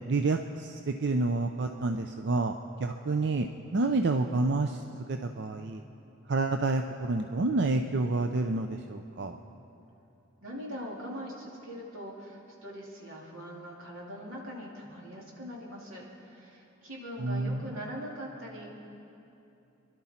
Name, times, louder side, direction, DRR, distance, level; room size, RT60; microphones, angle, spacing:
voice 1, 0.1-3.5 3.7-4.8 5.1-5.8 6.3-9.4 17.2-17.6, right 3 dB, 55° right, 5 dB, 0.5 m, -29 dB
voice 2, 10.4-18.7, equal, 85° right, -3 dB, 2.7 m, -42 dB
25.5 x 11.5 x 4.3 m, 2.9 s
head